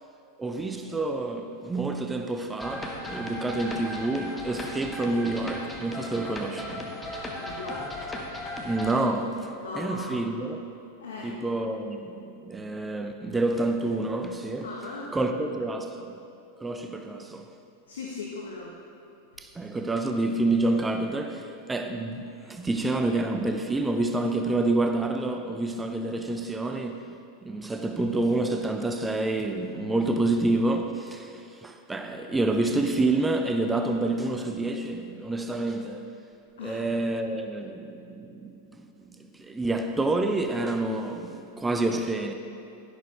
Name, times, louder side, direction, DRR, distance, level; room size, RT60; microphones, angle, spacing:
voice 1, 0.4-6.9 8.6-10.6 11.2-14.8 15.1-16.2 16.6-17.5 19.4-36.1 36.6-42.3, right 2 dB, 10° right, 0.5 m, -28 dB
sound 1, 2.6-8.9, left 1 dB, 10° left, 1.3 m, -36 dB
voice 2, 7.3-7.9 9.6-10.2 11.0-11.4 14.6-15.1 17.9-18.7 36.6-36.8, left 3 dB, 65° left, 1.1 m, -38 dB
11.0 x 11.0 x 3.3 m
figure-of-eight pair, 90°, 0 cm